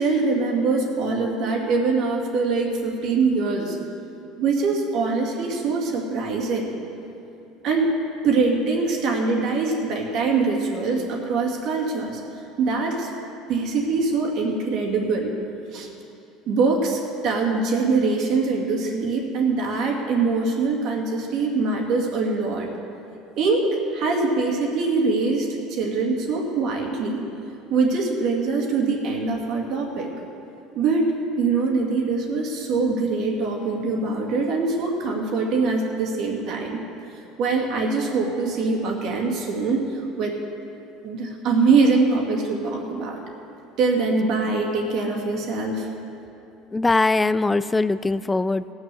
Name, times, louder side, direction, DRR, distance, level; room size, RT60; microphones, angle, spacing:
voice 1, 0.0-3.8 4.4-6.7 7.6-8.0 8.2-12.2 12.6-13.1 13.5-15.3 15.7-15.9 16.5-22.7 23.4-27.2 27.7-30.1 30.7-36.8 37.4-40.4 41.0-43.2 43.8-45.9, right 4 dB, 55° right, 0 dB, 2.1 m, -23 dB
voice 2, 46.7-48.7, left 3 dB, 10° left, 15 dB, 0.3 m, -21 dB
17.0 x 6.3 x 6.9 m, 2.9 s
cardioid pair, 125°, 0 cm